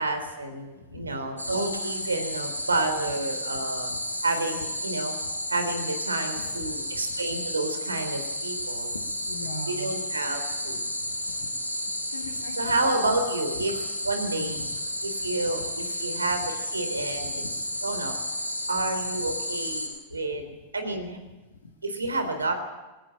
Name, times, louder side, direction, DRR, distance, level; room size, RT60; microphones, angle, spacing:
voice 1, 0.0-3.9 4.2-5.2 5.5-8.9 9.7-10.8 12.6-13.7 14.1-14.6 15.1-17.4 17.8-18.2 18.7-20.4 20.7-21.2 21.8-22.5, right 2 dB, 75° right, 7 dB, 3.9 m, -29 dB
voice 2, 0.9-1.5 3.7-4.0 6.4-6.7 8.9-10.0 12.1-13.1 14.3-14.7 15.2-15.3 15.6-15.7 17.3-17.5 20.5-20.6, left 2 dB, 70° left, 3 dB, 2.3 m, -41 dB
sound 1, 1.4-19.9, left 1 dB, 85° left, 7.4 m, -32 dB
22.0 x 18.0 x 9.0 m, 1.1 s
figure-of-eight pair, 90°, 0 cm